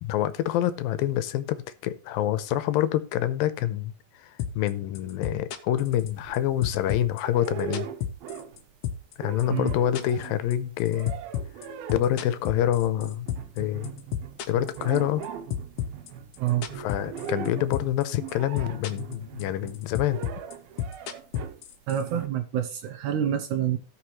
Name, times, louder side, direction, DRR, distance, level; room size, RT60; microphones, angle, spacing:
voice 1, 0.0-3.9 4.2-4.3 4.6-7.9 9.2-11.1 11.9-13.3 13.6-13.9 14.5-15.2 16.7-20.2, left 12 dB, 85° left, 2.4 m, -26 dB
sound 1, 4.4-4.7 5.0-6.4 6.6-8.6 8.8-9.1 9.4-13.6 13.8-15.3 15.5-17.5 17.7-18.0 18.3-19.1 19.4-22.0, left 10 dB, 70° left, 2.1 m, -31 dB
sound 2, 5.8-6.8 7.2-8.7 9.0-21.6 22.1-22.3, right 9 dB, 90° right, 2.7 m, -40 dB
voice 2, 21.9-23.8, right 10 dB, 75° right, 1.9 m, -27 dB
16.5 x 5.6 x 3.1 m
omnidirectional pair, 4.1 m